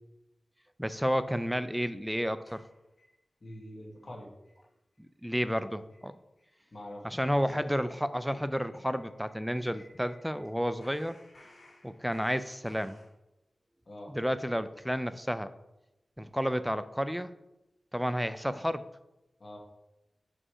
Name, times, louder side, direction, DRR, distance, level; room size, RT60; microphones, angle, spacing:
voice 1, 0.8-2.6 5.0-6.1 7.0-11.2 11.8-13.0 14.1-15.5 16.2-17.3 17.9-18.8, equal, ahead, 12 dB, 0.5 m, -31 dB
sound 1, 2.5-3.6 4.0-4.1 4.4-4.7 4.9-5.0 5.4-5.6 5.9-6.1 6.4-6.5 6.8-10.5 10.8-13.1, left 1 dB, 75° left, 2.5 m, -58 dB
voice 2, 3.4-4.3 6.7-7.6 13.9-14.1 19.4-19.6, left 1 dB, 55° left, -1 dB, 1.9 m, -45 dB
5.5 x 5.1 x 4.9 m, 0.93 s
cardioid pair, 50°, 0 cm